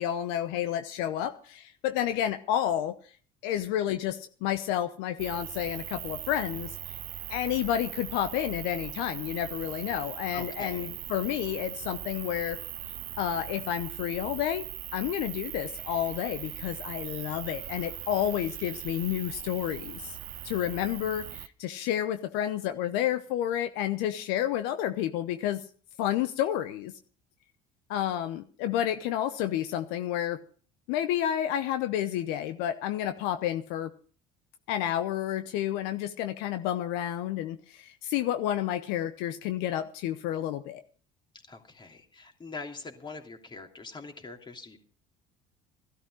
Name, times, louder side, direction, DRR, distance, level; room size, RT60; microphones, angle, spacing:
voice 1, 0.0-3.0 3.4-6.8 7.3-12.6 13.2-14.6 14.9-20.2 20.4-25.6 26.0-26.9 27.9-30.4 30.9-33.9 34.7-40.8, left 11 dB, 75° left, 9 dB, 0.9 m, -30 dB
sound 1, 5.2-21.5, right 13 dB, 55° right, 0.7 m, -40 dB
voice 2, 10.3-10.9 41.5-44.8, left 4 dB, 25° left, 3 dB, 3.0 m, -43 dB
14.5 x 12.5 x 4.8 m, 0.42 s
hypercardioid pair, 75°, 17 cm